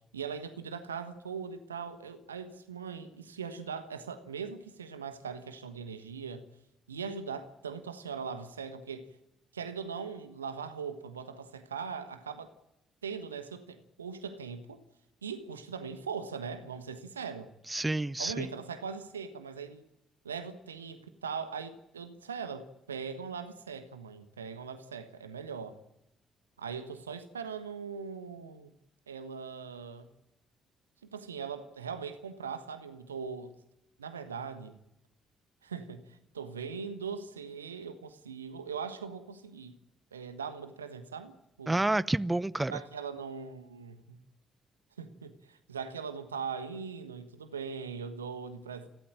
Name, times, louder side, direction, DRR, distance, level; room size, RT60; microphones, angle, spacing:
voice 1, 0.1-6.5 6.9-9.1 9.5-12.5 13.0-14.8 15.2-17.5 18.2-19.8 20.2-25.8 26.6-28.7 29.1-30.1 31.1-33.6 34.0-34.8 35.6-39.8 40.1-41.8 42.7-44.2 45.0-48.9, right 6 dB, 85° right, 1.3 m, -40 dB
voice 2, 17.7-18.5 41.7-42.7, right 2 dB, 15° right, 0.7 m, -29 dB
29.5 x 13.0 x 8.9 m
figure-of-eight pair, 45°, 0 cm